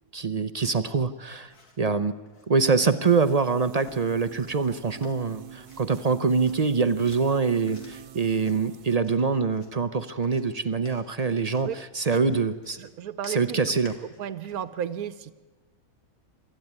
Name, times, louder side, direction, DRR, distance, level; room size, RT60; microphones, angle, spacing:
voice 1, 0.1-2.2 2.5-11.7 11.9-12.8 13.3-13.9, right 4 dB, 40° right, 12 dB, 0.5 m, -24 dB
sound 1, 1.5-1.9 2.3-2.5 2.9-3.1 3.8-4.1 4.4-4.8 5.0-6.1 6.4-8.1 8.4-8.6 9.0-9.8 10.2-14.7, left 3 dB, 90° left, 3.1 m, -54 dB
sound 2, 3.1-9.0, right 9 dB, 90° right, 1.4 m, -46 dB
voice 2, 12.8-13.8 14.2-15.4, right 9 dB, 75° right, 13 dB, 1.3 m, -34 dB
25.0 x 14.0 x 9.6 m, 1.3 s
omnidirectional pair, 1.6 m